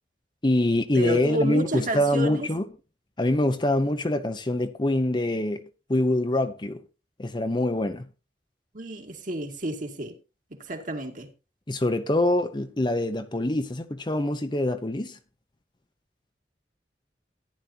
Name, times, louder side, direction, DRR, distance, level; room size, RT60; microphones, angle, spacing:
voice 1, 0.4-2.7 3.2-5.6 5.9-6.8 7.2-8.1 11.7-15.2, left 1 dB, 25° left, 0.8 m, -25 dB
voice 2, 0.9-2.5 8.7-10.1 10.5-11.3, equal, 50° right, 2.2 m, -30 dB
14.5 x 11.0 x 2.8 m
head